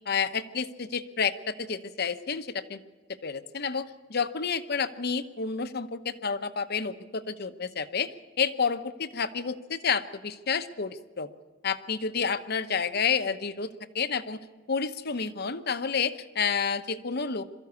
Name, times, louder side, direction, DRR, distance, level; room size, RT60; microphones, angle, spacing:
voice 1, 0.1-2.8 3.2-8.1 8.4-11.3 11.6-14.4 14.7-17.5, left 6 dB, 60° left, 11 dB, 1.0 m, -30 dB
23.0 x 13.5 x 8.2 m, 1.3 s
head